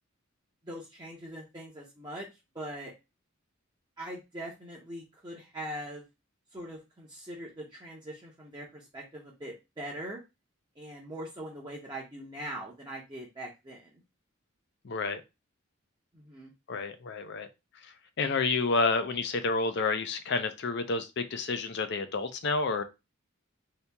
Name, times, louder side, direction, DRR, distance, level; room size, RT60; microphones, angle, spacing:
voice 1, 0.6-2.3 2.5-2.9 4.0-6.0 6.5-10.2 10.8-13.9 16.1-16.5, right 1 dB, 20° right, 0.7 m, -42 dB
voice 2, 14.8-15.2 16.7-17.5 18.2-22.8, left 3 dB, 55° left, 0.5 m, -29 dB
2.9 x 2.8 x 3.3 m
head